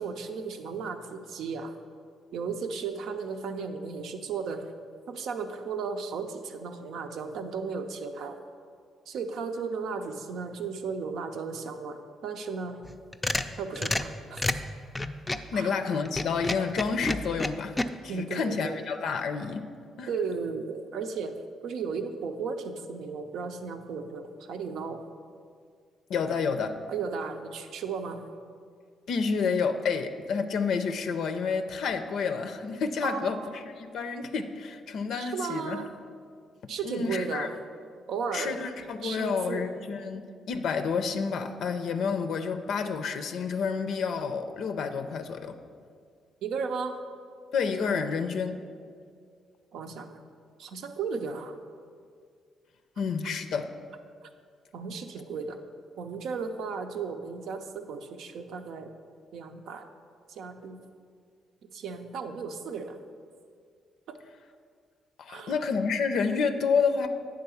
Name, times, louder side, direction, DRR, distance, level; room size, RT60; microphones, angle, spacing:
voice 1, 0.0-1.7 2.3-4.7 5.1-8.4 9.1-12.9 13.6-14.5 15.5-15.7 18.1-18.8 20.1-21.4 21.6-25.0 26.9-28.3 33.0-33.6 35.2-35.9 36.7-37.6 38.1-38.6 39.0-39.7 46.4-47.0 49.7-50.2 50.6-51.6 54.2-54.3 54.7-55.6 56.0-58.9 59.3-59.9 60.3-60.8 61.7-63.0 64.1-64.2 65.3-65.6, right 5 dB, 75° right, 7 dB, 0.6 m, -35 dB
sound 1, 12.8-15.5 16.0-17.9, left 1 dB, 15° left, 0.4 m, -30 dB
voice 2, 15.3-17.7 18.0-19.6 20.0-20.1 26.1-26.8 29.1-33.4 33.8-35.8 36.8-37.5 38.3-45.6 47.5-48.6 53.0-53.7 65.2-67.1, left 5 dB, 75° left, 8 dB, 0.5 m, -29 dB
8.8 x 3.8 x 6.9 m, 2.2 s
cardioid pair, 90°, 0 cm